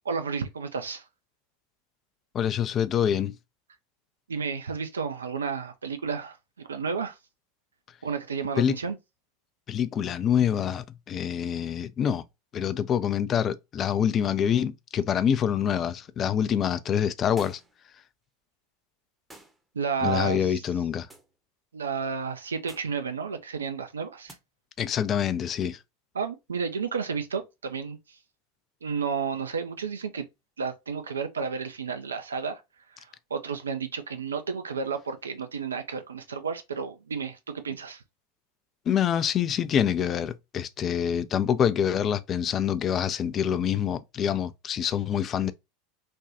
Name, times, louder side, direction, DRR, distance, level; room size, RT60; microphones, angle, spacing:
voice 1, 0.0-1.0 4.3-7.2 8.0-9.0 19.7-20.6 21.7-24.4 26.1-28.2 28.8-30.3 30.6-32.6 32.9-38.0, right 5 dB, 80° right, 0.4 m, -32 dB
voice 2, 2.3-3.3 8.6-8.8 9.7-12.2 12.5-17.6 20.0-21.1 24.8-25.8 38.9-45.5, left 9 dB, 35° left, 0.3 m, -26 dB
sound 1, 17.4-17.8 19.3-19.6 21.1-21.3 22.7-23.0 24.3-24.4, right 1 dB, 10° right, 0.7 m, -49 dB
3.4 x 2.2 x 2.7 m
figure-of-eight pair, 80°, 0 cm